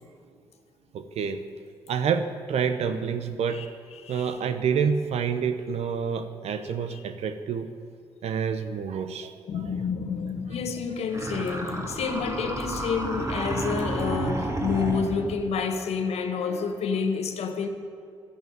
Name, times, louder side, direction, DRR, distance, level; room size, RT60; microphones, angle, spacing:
voice 1, 0.9-1.5 1.9-3.6 4.1-7.7 8.2-9.7, right 6 dB, 65° right, 0.8 m, -28 dB
voice 2, 4.0-4.3 6.9-7.0 9.5-17.7, left 5 dB, 65° left, 1.4 m, -29 dB
sound 1, 11.1-15.5, right 1 dB, 25° right, 2.6 m, -31 dB
11.5 x 10.5 x 9.1 m
hypercardioid pair, 40°, 11 cm